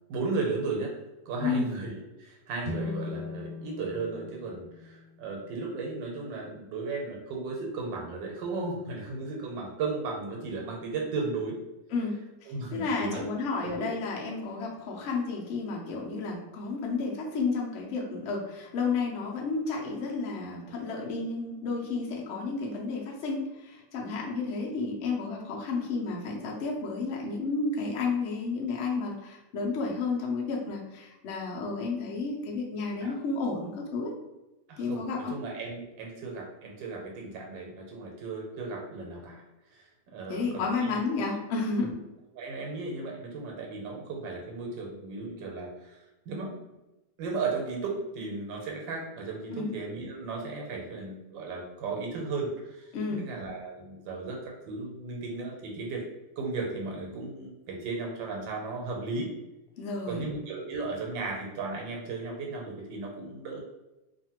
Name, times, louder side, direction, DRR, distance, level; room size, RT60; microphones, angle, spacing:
voice 1, 0.1-0.9 1.3-11.6 12.5-13.2 13.6-13.9 33.0-33.1 34.7-39.4 39.7-41.0 41.8-41.9 42.3-46.5 47.2-56.0 56.4-59.3 60.1-63.6, right 3 dB, 90° right, 0 dB, 1.4 m, -35 dB
voice 2, 1.4-1.8 11.9-12.1 12.4-34.1 34.8-35.3 40.3-41.9 49.5-49.8 52.9-53.3 59.8-60.2, left 4 dB, 65° left, -2 dB, 0.7 m, -31 dB
sound 1, 2.6-5.9, left 4 dB, 80° left, 1.3 m, -39 dB
2.7 x 2.5 x 2.8 m, 0.99 s
omnidirectional pair, 2.0 m